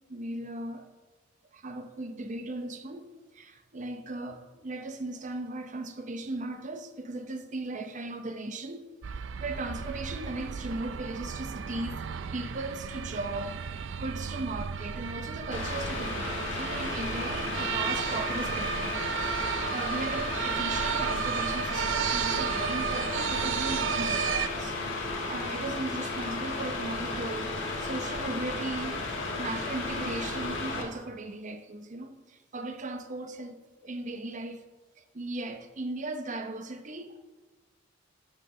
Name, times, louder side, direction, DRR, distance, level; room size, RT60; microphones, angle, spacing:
voice 1, 0.1-0.9 1.5-3.1 3.3-8.9 9.2-12.1 12.3-13.6 14.0-19.0 19.7-24.8 25.2-27.5 27.8-29.0 29.4-34.7 35.1-37.2, right 2 dB, 40° right, 0.7 m, -37 dB
sound 1, 9.0-24.5, right 7 dB, 70° right, 0.4 m, -33 dB
Mechanical fan, 15.5-30.8, left 3 dB, 80° left, 1.6 m, -34 dB
11.0 x 6.4 x 3.8 m
head